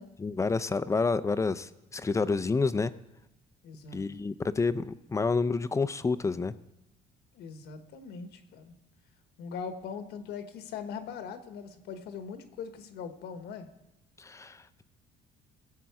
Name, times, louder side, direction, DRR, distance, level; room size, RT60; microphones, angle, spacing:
voice 1, 0.2-2.9 3.9-6.5 14.2-14.6, left 4 dB, 15° left, 14 dB, 0.5 m, -29 dB
voice 2, 3.6-4.0 7.3-8.7 9.4-13.7, left 6 dB, 75° left, 8 dB, 1.2 m, -41 dB
17.0 x 7.5 x 4.7 m, 0.90 s
cardioid pair, 110°, 17 cm